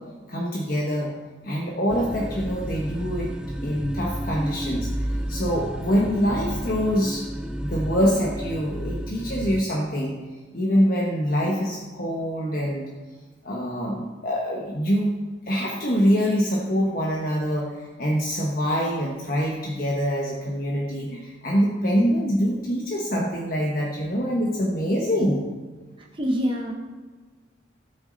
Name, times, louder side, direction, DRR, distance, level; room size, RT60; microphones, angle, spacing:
voice 1, 0.3-1.1 1.4-3.3 3.6-7.2 7.6-10.2 10.5-12.9 13.4-15.2 15.5-25.4, equal, 50° left, -2 dB, 1.2 m, -25 dB
sound 1, 1.9-9.6, right 1 dB, 5° right, 0.3 m, -31 dB
voice 2, 26.0-26.7, equal, 25° right, 1 dB, 1.0 m, -26 dB
17.5 x 6.3 x 4.0 m, 1.3 s
head